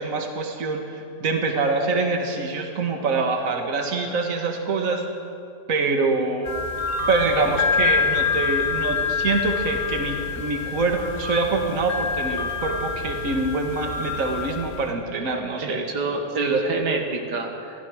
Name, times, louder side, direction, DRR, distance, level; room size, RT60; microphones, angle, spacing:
voice 1, 0.0-5.1 5.7-6.6 7.1-15.9 16.4-16.6 16.9-17.1, right 3 dB, 50° right, 3 dB, 2.1 m, -25 dB
sound 1, 6.4-14.8, left 5 dB, 30° left, 2.3 m, -26 dB
voice 2, 15.6-17.8, right 3 dB, 75° right, 3 dB, 2.3 m, -27 dB
25.5 x 17.0 x 6.4 m, 2.5 s
omnidirectional pair, 1.8 m